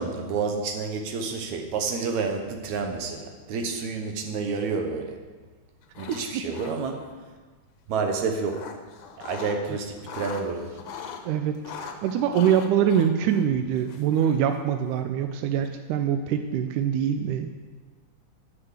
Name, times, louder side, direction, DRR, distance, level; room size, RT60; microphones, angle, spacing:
voice 1, 0.0-5.2 6.0-7.1 7.9-8.7 9.2-10.8, right 4 dB, 75° right, 4 dB, 2.2 m, -29 dB
sound 1, 5.8-6.2 6.5-7.1 8.1-9.6 9.9-11.2 11.6-14.6, left 7 dB, 85° left, 2.4 m, -41 dB
voice 2, 6.1-6.4 11.3-11.5 11.8-17.5, right 9 dB, 90° right, 6 dB, 2.1 m, -24 dB
9.8 x 7.0 x 7.3 m, 1.4 s
omnidirectional pair, 3.5 m